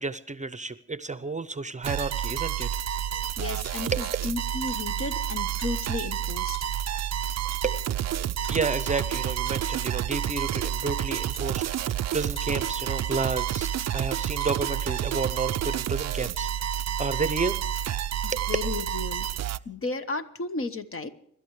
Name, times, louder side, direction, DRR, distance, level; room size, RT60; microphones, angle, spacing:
voice 1, 0.0-2.7 3.9-4.0 7.6-7.9 8.5-16.5 17.0-17.6 18.3-18.5, right 4 dB, 25° right, 13 dB, 0.7 m, -31 dB
sound 1, 1.8-19.6, right 10 dB, 55° right, 0.5 m, -29 dB
sound 2, 2.6-2.7 3.6-3.9 4.7-4.8 5.6-5.7 6.5-6.7 7.5-7.9 8.4-8.8 9.5-9.6 10.4-10.6 11.3-11.5 12.4-12.5 13.4-13.5 14.4-14.5, left 3 dB, 75° left, 5.2 m, -47 dB
voice 2, 3.4-6.6 18.2-19.3 19.6-21.1, left 3 dB, 45° left, 9 dB, 1.2 m, -33 dB
26.0 x 12.5 x 3.2 m, 0.71 s
wide cardioid pair, 105°, 32 cm